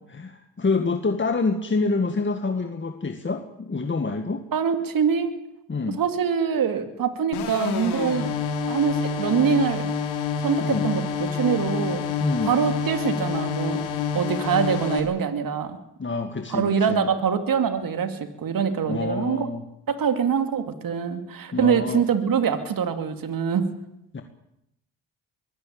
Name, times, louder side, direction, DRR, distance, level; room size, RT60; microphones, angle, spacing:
voice 1, 0.1-4.4 5.7-6.0 10.6-10.9 11.6-11.7 12.2-12.5 16.0-17.1 18.8-19.6 21.5-22.0 24.1-24.2, left 3 dB, 30° left, 6 dB, 2.0 m, -27 dB
voice 2, 4.5-5.3 6.0-8.3 8.7-9.8 10.4-12.1 12.4-13.9 14.1-15.8 16.5-19.5 19.9-23.7, right 7 dB, 60° right, 8 dB, 2.7 m, -24 dB
sound 1, 7.3-15.0, left 6 dB, 85° left, 3.4 m, -28 dB
22.5 x 16.0 x 8.8 m, 0.83 s
supercardioid pair, 55°, 38 cm